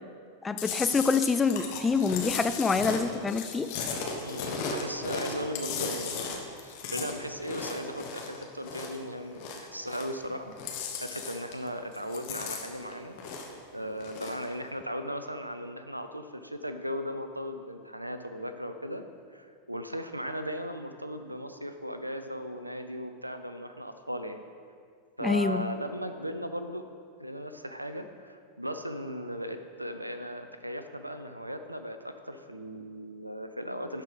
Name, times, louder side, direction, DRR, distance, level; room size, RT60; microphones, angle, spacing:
voice 1, 0.4-3.7 25.2-25.6, left 4 dB, 15° left, 10 dB, 0.4 m, -26 dB
Chewing mastication, 0.6-9.0 9.3-10.3 10.5-11.7 11.9-13.6 14.0-14.4, left 5 dB, 45° left, 1.1 m, -36 dB
voice 2, 4.2-13.2 13.7-19.0 19.3-24.4 25.2-26.9 27.2-34.0, equal, 85° right, 8 dB, 0.5 m, -37 dB
11.0 x 4.4 x 5.2 m, 2.2 s
figure-of-eight pair, 90°, 0 cm